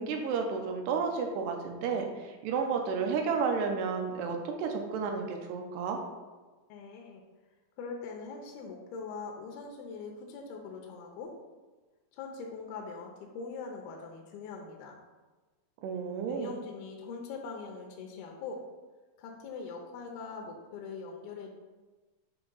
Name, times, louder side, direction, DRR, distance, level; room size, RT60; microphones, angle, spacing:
voice 1, 0.0-6.0 15.8-16.5, right 5 dB, 80° right, 3 dB, 2.5 m, -32 dB
voice 2, 6.7-7.2 7.8-11.4 12.1-15.0 16.3-18.6 19.2-21.5, left 4 dB, 80° left, 1 dB, 2.4 m, -42 dB
7.8 x 2.9 x 5.4 m, 1.3 s
omnidirectional pair, 4.9 m